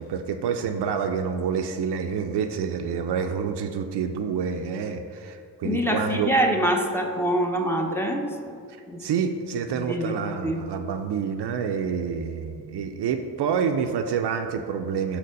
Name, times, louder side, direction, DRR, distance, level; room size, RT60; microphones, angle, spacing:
voice 1, 0.0-6.3 8.7-15.2, right 6 dB, 60° right, 7 dB, 0.6 m, -28 dB
voice 2, 5.6-8.3 8.9-9.1 9.7-10.6, right 1 dB, 5° left, 1 dB, 0.9 m, -25 dB
5.9 x 4.1 x 5.2 m, 2.4 s
hypercardioid pair, 40°, 46 cm